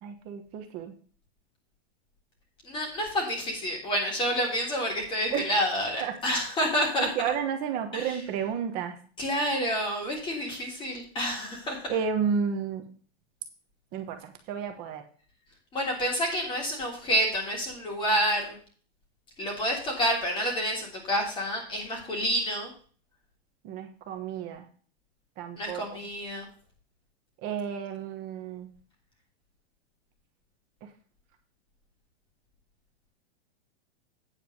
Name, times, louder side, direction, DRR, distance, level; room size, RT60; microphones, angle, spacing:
voice 1, 0.0-0.9 5.3-5.5 6.0-6.2 7.0-8.9 11.9-12.8 13.9-15.0 23.6-24.6 25.4-25.8 27.4-28.7, right 7 dB, 25° right, 6 dB, 1.2 m, -31 dB
voice 2, 2.6-7.1 7.9-8.2 9.2-11.8 15.7-18.5 19.4-22.7 25.6-26.5, equal, 15° left, -1 dB, 3.2 m, -28 dB
9.3 x 4.6 x 7.7 m, 0.42 s
supercardioid pair, 165°, 32 cm